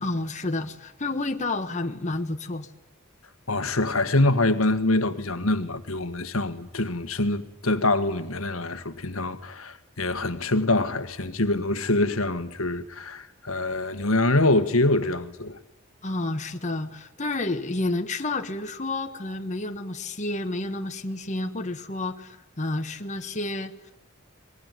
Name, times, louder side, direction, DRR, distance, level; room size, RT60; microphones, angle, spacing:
voice 1, 0.0-2.7 16.0-23.9, left 2 dB, 35° left, 1.4 m, -30 dB
voice 2, 3.5-15.6, left 2 dB, 80° left, 1.8 m, -25 dB
24.0 x 21.5 x 9.3 m
head